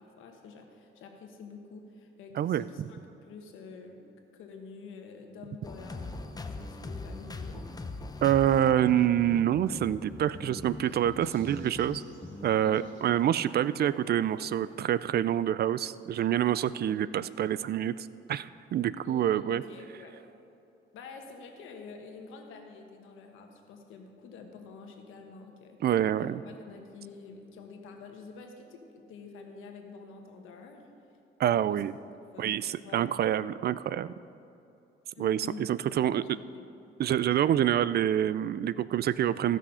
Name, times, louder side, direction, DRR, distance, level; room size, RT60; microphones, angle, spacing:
voice 1, 0.0-4.0 4.3-7.7 12.6-13.0 19.0-20.2 20.9-25.8 26.2-30.9 31.7-31.8 32.3-33.2 35.2-35.7 36.0-36.5, left 4 dB, 85° left, 3 dB, 1.4 m, -48 dB
sound 1, 5.6-13.2, left 3 dB, 20° left, 0.8 m, -41 dB
voice 2, 8.2-12.0 12.4-19.6 25.8-26.4 31.4-31.9 32.4-34.1 35.2-36.2 37.0-39.6, right 11 dB, 55° right, 17 dB, 0.4 m, -27 dB
sound 2, 9.5-14.8, right 2 dB, 80° right, 2.7 m, -60 dB
15.5 x 6.2 x 5.6 m, 2.7 s
cardioid pair, 90°, 20 cm